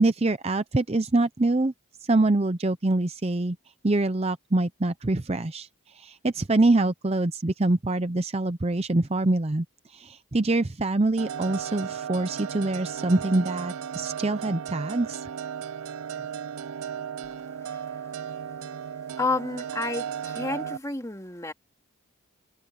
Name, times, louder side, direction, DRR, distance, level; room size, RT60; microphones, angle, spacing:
voice 1, 0.0-1.7 2.1-3.6 3.8-5.7 5.9-9.6 9.9-15.3, right 2 dB, 30° right, 0.6 m, -25 dB
sound 1, 11.2-20.8, right 8 dB, 80° right, 0.5 m, -35 dB
voice 2, 17.6-18.0 19.2-21.5, left 3 dB, 15° left, 2.4 m, -31 dB
head